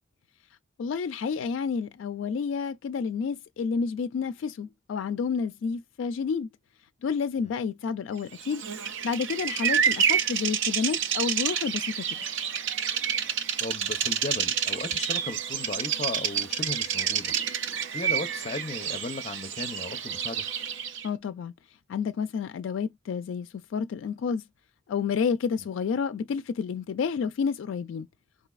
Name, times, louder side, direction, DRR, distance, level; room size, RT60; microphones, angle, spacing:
voice 1, 0.8-6.5 7.0-8.6 9.0-12.1 21.0-21.5 21.9-24.4 24.9-28.1, left 6 dB, 75° left, 0.3 m, -30 dB
Bird vocalization bird call bird song, 8.4-21.1, right 8 dB, 75° right, 0.5 m, -29 dB
voice 2, 13.6-17.3 17.9-20.5, left 3 dB, 35° left, 0.6 m, -36 dB
4.0 x 2.7 x 2.3 m
head